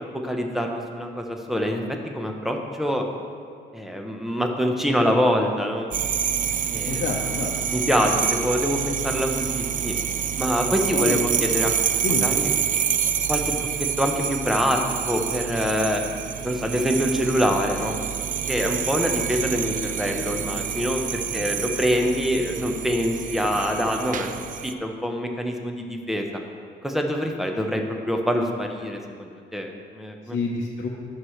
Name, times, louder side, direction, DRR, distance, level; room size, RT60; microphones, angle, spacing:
voice 1, 0.2-1.8 2.1-3.0 3.7-5.9 6.7-7.0 7.7-9.9 10.4-11.8 12.2-12.5 13.3-14.8 15.0-16.0 16.4-18.0 18.5-24.4 24.6-26.2 26.8-30.4, equal, ahead, 2 dB, 0.9 m, -25 dB
sound 1, 5.9-24.7, right 8 dB, 40° right, 0.4 m, -27 dB
voice 2, 6.9-7.5 10.9-11.2 12.0-12.3 30.3-30.9, left 4 dB, 60° left, -3 dB, 0.9 m, -28 dB
11.0 x 6.5 x 3.2 m, 2.3 s
cardioid pair, 90°, 20 cm